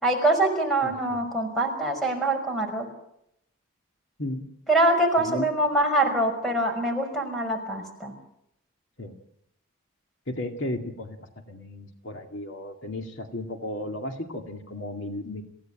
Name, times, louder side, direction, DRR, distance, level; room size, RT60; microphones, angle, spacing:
voice 1, 0.0-2.9 4.7-8.1, right 1 dB, ahead, 4 dB, 5.5 m, -24 dB
voice 2, 0.8-1.2 4.2-4.4 5.2-5.5 9.0-9.2 10.3-11.2 11.5-15.4, left 1 dB, 60° left, 4 dB, 2.3 m, -34 dB
28.5 x 16.0 x 8.9 m, 0.78 s
head